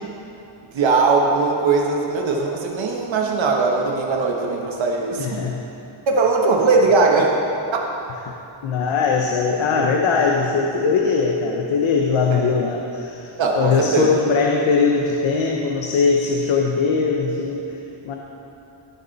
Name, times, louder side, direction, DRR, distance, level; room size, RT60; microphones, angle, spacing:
voice 1, 0.7-5.4 6.1-7.3 7.7-7.8 9.7-9.9 12.3-12.4 13.4-14.1, right 4 dB, 70° right, 0 dB, 1.3 m, -19 dB
voice 2, 5.2-5.6 8.6-17.8 18.0-18.1, left 5 dB, 85° left, 0 dB, 1.0 m, -20 dB
17.5 x 6.9 x 4.1 m, 2.9 s
wide cardioid pair, 180°, 47 cm